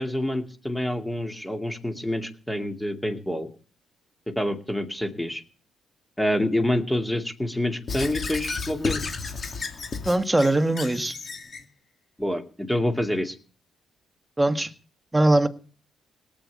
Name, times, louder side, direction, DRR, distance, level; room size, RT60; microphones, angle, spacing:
voice 1, 0.0-3.5 4.4-5.4 6.2-9.1 12.2-13.4, left 1 dB, 5° left, 6 dB, 2.3 m, -27 dB
Squeak / Writing, 7.9-11.6, left 4 dB, 40° left, 2.4 m, -32 dB
voice 2, 10.0-11.1 14.4-14.7 15.1-15.5, right 1 dB, 10° right, 9 dB, 1.5 m, -21 dB
18.0 x 8.8 x 8.4 m, 0.41 s
cardioid pair, 90°, 0 cm